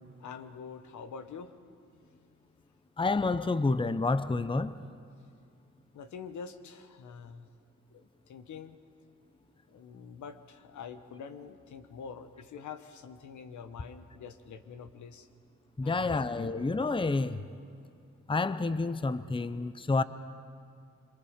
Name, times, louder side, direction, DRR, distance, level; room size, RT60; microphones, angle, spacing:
voice 1, 0.2-1.5 5.9-7.5 7.9-8.8 9.7-15.3 15.8-16.7, left 6 dB, 80° left, 10 dB, 1.3 m, -45 dB
voice 2, 3.0-4.7 15.8-17.4 18.3-20.0, left 3 dB, 15° left, 14 dB, 0.8 m, -29 dB
26.5 x 26.0 x 5.1 m, 2.3 s
cardioid pair, 55°, 29 cm